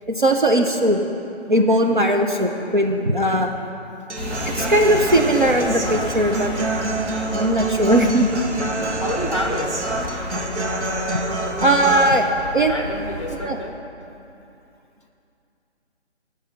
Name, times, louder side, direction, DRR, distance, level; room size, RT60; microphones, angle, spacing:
voice 1, 0.1-1.0 1.5-3.5 4.5-6.5 7.3-8.3 11.6-12.8 13.3-13.6, right 1 dB, 45° right, 2 dB, 0.6 m, -19 dB
sound 1, 4.1-13.4, left 2 dB, 10° left, 1.5 m, -32 dB
Human voice / Acoustic guitar, 4.1-12.1, right 2 dB, 90° right, 1.1 m, -27 dB
voice 2, 9.0-9.8 12.7-13.8, equal, 25° left, 3 dB, 0.7 m, -28 dB
10.5 x 5.6 x 7.5 m, 2.7 s
figure-of-eight pair, 180°, 34 cm